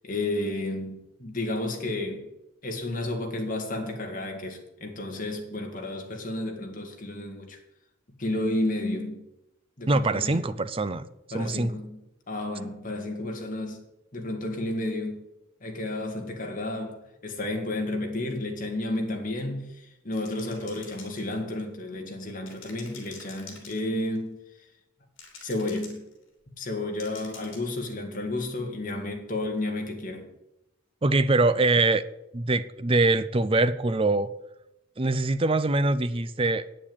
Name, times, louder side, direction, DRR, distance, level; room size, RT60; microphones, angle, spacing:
voice 1, 0.0-2.3 2.6-7.6 8.2-9.3 9.8-10.5 11.3-12.0 12.3-13.9 14.1-15.2 15.6-24.4 25.4-26.0 26.6-30.3, left 1 dB, 40° left, 2.0 m, -32 dB
voice 2, 9.9-11.0 11.3-11.7 31.0-32.0 32.3-34.3 35.0-36.6, right 2 dB, 25° right, 0.5 m, -23 dB
sound 1, 20.1-21.6 22.5-24.2 25.2-26.2 27.0-27.8, left 5 dB, 65° left, 3.1 m, -47 dB
8.9 x 7.4 x 8.7 m
head